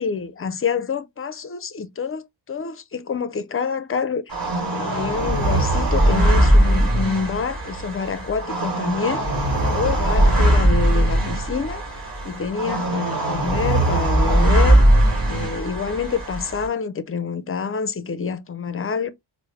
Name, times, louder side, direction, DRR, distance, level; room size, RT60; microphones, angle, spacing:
voice 1, 0.0-4.4 4.7-9.2 9.7-11.8 12.2-14.8 15.3-19.1, left 5 dB, 30° left, 0.4 m, -27 dB
sound 1, 4.3-16.7, right 1 dB, 50° right, 2.2 m, -20 dB
4.7 x 2.0 x 3.1 m
wide cardioid pair, 140°, 44 cm